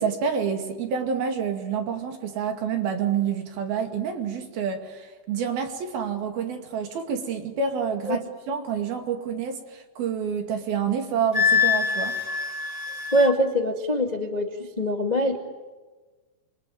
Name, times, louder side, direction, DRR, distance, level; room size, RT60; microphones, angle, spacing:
voice 1, 0.0-12.2, right 7 dB, 65° right, 5 dB, 4.1 m, -28 dB
Wind instrument woodwind instrument, 11.3-13.3, left 6 dB, 75° left, 0.5 m, -24 dB
voice 2, 13.1-15.4, equal, 25° left, 3 dB, 0.9 m, -23 dB
28.0 x 23.0 x 9.3 m, 1.3 s
omnidirectional pair, 4.8 m